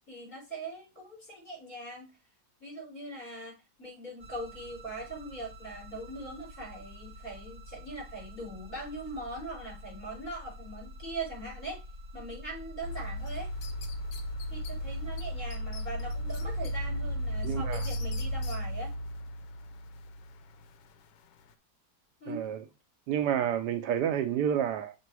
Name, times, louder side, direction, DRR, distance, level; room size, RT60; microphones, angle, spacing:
voice 1, 0.1-2.1 2.6-11.8 12.1-13.5 14.5-18.9 22.2-22.4, right 2 dB, 30° left, 4.5 m, -41 dB
sound 1, 4.2-18.5, left 1 dB, 30° right, 0.9 m, -46 dB
sound 2, 12.8-21.1 21.5-21.6, equal, 90° left, 1.3 m, -35 dB
sound 3, 13.3-14.7 15.2-15.3 15.5-16.7 17.1-18.6, left 7 dB, 60° left, 1.0 m, -47 dB
voice 2, 17.4-17.9 22.3-22.6 23.1-24.9, right 9 dB, 75° right, 1.1 m, -29 dB
6.7 x 3.1 x 4.7 m
omnidirectional pair, 1.8 m